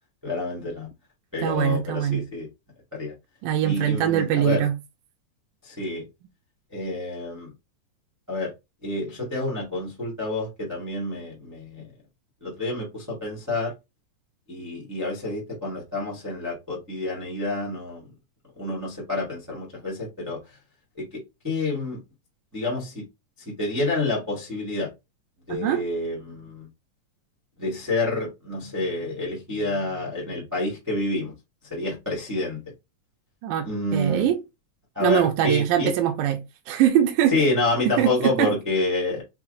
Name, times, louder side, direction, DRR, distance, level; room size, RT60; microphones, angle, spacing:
voice 1, 0.2-0.9 1.3-2.5 2.9-3.1 3.6-4.7 5.6-6.0 6.7-7.5 8.3-8.5 8.8-11.9 12.4-13.7 14.5-18.0 18.6-20.4 21.0-21.1 21.4-22.0 22.5-23.0 23.4-24.9 25.5-26.7 27.6-31.3 31.7-32.6 33.6-34.3 34.9-35.9 37.3-39.2, left 2 dB, 15° right, 0.7 m, -28 dB
voice 2, 1.4-2.2 3.4-4.7 25.5-25.8 33.4-34.4 35.0-36.4 36.7-37.3 38.0-38.5, right 10 dB, 80° right, 2.0 m, -22 dB
5.7 x 2.6 x 2.5 m
omnidirectional pair, 3.8 m